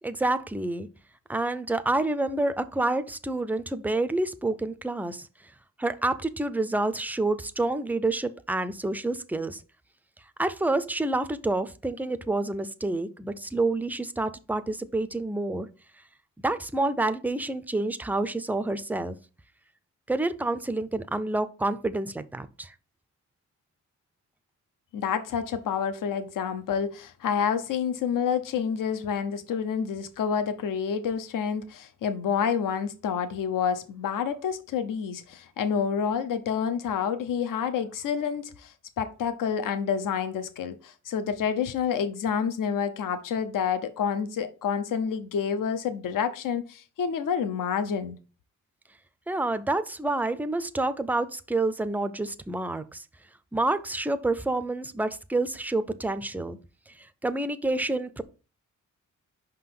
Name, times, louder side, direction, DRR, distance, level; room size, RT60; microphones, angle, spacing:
voice 1, 0.0-0.9 1.3-9.6 10.4-15.7 16.4-19.2 20.1-22.7 49.3-53.1 53.5-56.6 56.9-58.2, right 2 dB, 5° right, 0.3 m, -28 dB
voice 2, 24.9-48.2, left 7 dB, 80° left, 0.7 m, -28 dB
5.6 x 3.8 x 5.8 m
wide cardioid pair, 155°, 32 cm